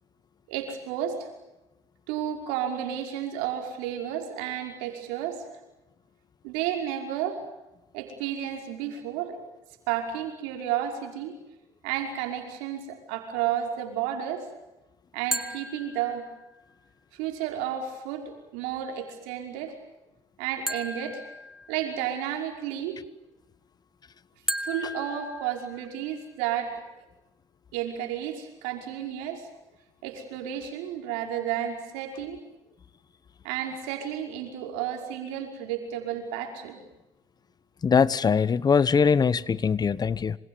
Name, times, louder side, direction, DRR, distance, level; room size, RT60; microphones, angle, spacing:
voice 1, 0.5-1.3 2.1-5.4 6.4-7.4 7.9-9.4 9.9-11.4 11.8-14.4 15.1-16.2 17.1-19.7 20.4-21.2 21.7-23.0 24.6-26.7 27.7-29.5 30.0-32.4 33.4-36.8, right 10 dB, 90° right, 3 dB, 5.5 m, -32 dB
sound 1, 15.3-16.6 20.7-22.2 24.5-26.2, equal, 5° right, 2.1 m, -35 dB
voice 2, 37.8-40.4, left 6 dB, 35° left, 18 dB, 1.1 m, -22 dB
27.5 x 25.5 x 7.2 m, 0.95 s
supercardioid pair, 75°, 11 cm